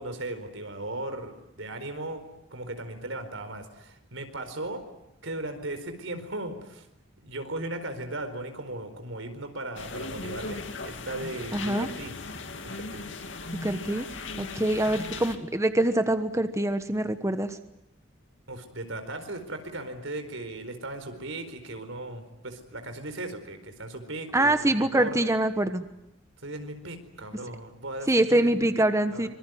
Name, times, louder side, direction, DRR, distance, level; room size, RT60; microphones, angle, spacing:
voice 1, 0.0-2.2 2.5-4.8 5.2-6.9 7.2-12.1 12.7-13.0 18.5-25.2 26.4-28.8 29.1-29.3, right 2 dB, 85° right, 8 dB, 4.5 m, -37 dB
sound 1, 9.8-15.4, left 3 dB, 70° left, 2.5 m, -37 dB
voice 2, 11.5-11.9 13.6-14.0 14.4-17.6 24.3-25.8 28.1-29.3, right 1 dB, 15° right, 9 dB, 1.2 m, -24 dB
25.5 x 24.5 x 9.4 m, 0.85 s
head